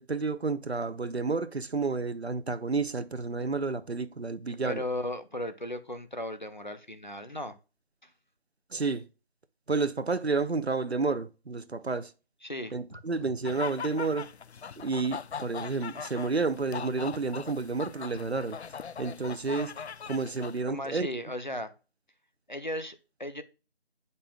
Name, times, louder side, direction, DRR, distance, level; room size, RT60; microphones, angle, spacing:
voice 1, 0.0-4.8 8.7-9.1 9.7-12.1 12.7-14.3 14.8-18.6 19.0-19.8 20.1-21.1, right 4 dB, 75° right, 0.8 m, -30 dB
voice 2, 4.5-7.5 8.0-8.1 12.4-13.0 20.7-21.7 22.5-23.4, left 1 dB, 45° left, 0.8 m, -36 dB
sound 1, 13.5-20.6, left 6 dB, 80° left, 0.5 m, -40 dB
8.9 x 5.4 x 2.3 m
figure-of-eight pair, 180°, 32 cm